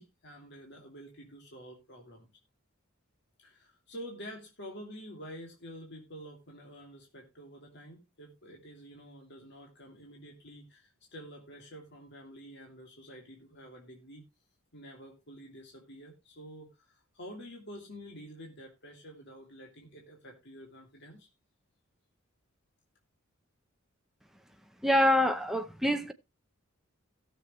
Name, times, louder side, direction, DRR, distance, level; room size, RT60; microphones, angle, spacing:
voice 1, 0.0-2.3 3.4-14.3 14.7-21.3, equal, 55° left, 2.8 m, -48 dB
voice 2, 24.8-26.1, left 1 dB, ahead, 0.7 m, -25 dB
17.0 x 6.8 x 3.2 m
head